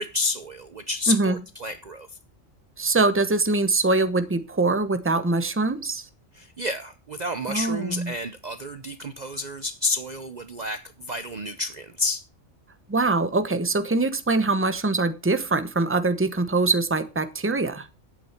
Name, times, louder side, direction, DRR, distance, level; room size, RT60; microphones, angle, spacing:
voice 1, 0.0-2.1 6.3-12.2, left 2 dB, 40° right, 0.8 m, -30 dB
voice 2, 1.1-1.4 2.8-6.1 7.5-8.1 12.9-17.9, right 3 dB, 10° right, 0.9 m, -23 dB
11.5 x 8.8 x 4.4 m
omnidirectional pair, 1.2 m